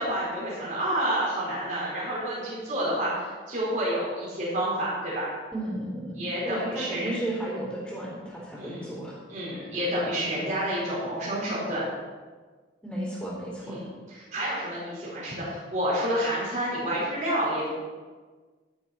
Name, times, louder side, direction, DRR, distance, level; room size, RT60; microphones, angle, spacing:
voice 1, 0.0-5.3 6.1-7.1 8.6-8.9 9.3-11.8 13.6-17.7, right 1 dB, 45° right, -7 dB, 4.4 m, -29 dB
voice 2, 5.5-9.2 12.8-13.8, right 1 dB, 5° left, -7 dB, 3.6 m, -34 dB
11.5 x 11.0 x 4.3 m, 1.4 s
head